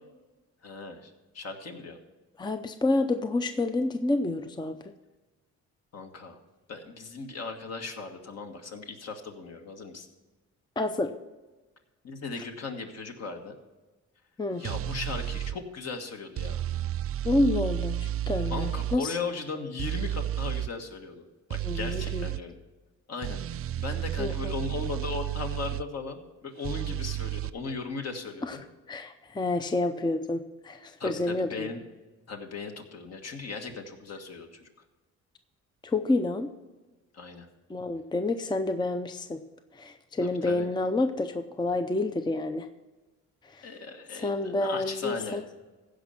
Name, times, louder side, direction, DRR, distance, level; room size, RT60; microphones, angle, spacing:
voice 1, 0.6-2.0 5.9-6.4 6.7-10.1 12.0-13.6 14.6-16.6 18.5-22.6 23.1-28.6 31.0-31.8 32.3-34.6 37.1-37.5 40.2-40.7 43.6-45.4, left 4 dB, 55° left, 4 dB, 1.7 m, -37 dB
voice 2, 2.4-4.8 10.8-11.1 14.4-14.6 17.2-19.2 21.6-22.2 24.2-24.6 28.4-28.6 28.9-31.7 35.8-36.5 37.7-39.4 39.7-42.7 43.4-43.7 44.2-45.4, left 2 dB, 15° left, 9 dB, 0.6 m, -29 dB
sound 1, 14.6-15.6 16.4-19.0 19.8-20.7 21.5-22.4 23.2-25.8 26.6-27.5, right 12 dB, 50° right, 0.4 m, -32 dB
15.5 x 5.2 x 5.8 m, 1.2 s
cardioid pair, 90°, 30 cm